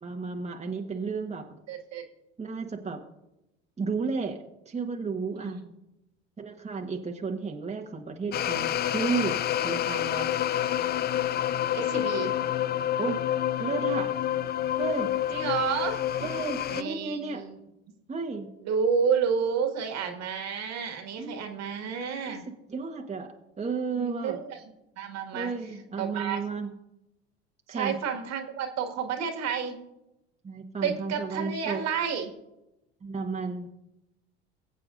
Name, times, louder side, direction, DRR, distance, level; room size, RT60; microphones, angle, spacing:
voice 1, 0.0-1.5 2.4-3.0 3.8-4.4 4.6-5.6 6.4-9.3 9.6-10.3 13.0-13.2 13.6-14.1 14.8-15.1 16.2-17.4 18.1-18.5 21.2-21.3 22.3-22.4 22.7-24.4 25.3-26.7 27.7-28.0 30.4-31.8 33.0-33.7, right 4 dB, 20° right, 2 dB, 1.4 m, -33 dB
voice 2, 1.7-2.0 5.4-5.7 11.7-12.3 15.3-16.0 16.7-17.6 18.7-22.4 23.9-25.5 26.0-26.4 27.7-29.8 30.8-32.3, right 6 dB, 55° right, 5 dB, 2.0 m, -30 dB
sound 1, 8.3-16.8, left 11 dB, 30° left, 0.4 m, -28 dB
20.0 x 8.3 x 2.6 m, 0.89 s
hypercardioid pair, 75°, 32 cm